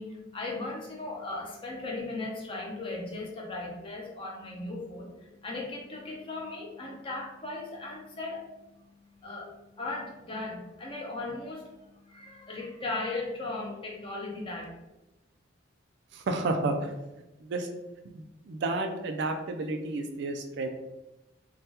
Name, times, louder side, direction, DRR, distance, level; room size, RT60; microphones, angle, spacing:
voice 1, 0.0-8.4 9.2-9.5 9.8-11.7 12.1-14.6, left 2 dB, 25° left, -1 dB, 0.6 m, -37 dB
voice 2, 16.1-16.9 17.4-17.7 18.1-20.7, right 2 dB, 60° right, 5 dB, 0.3 m, -31 dB
3.4 x 2.2 x 2.7 m, 0.99 s
head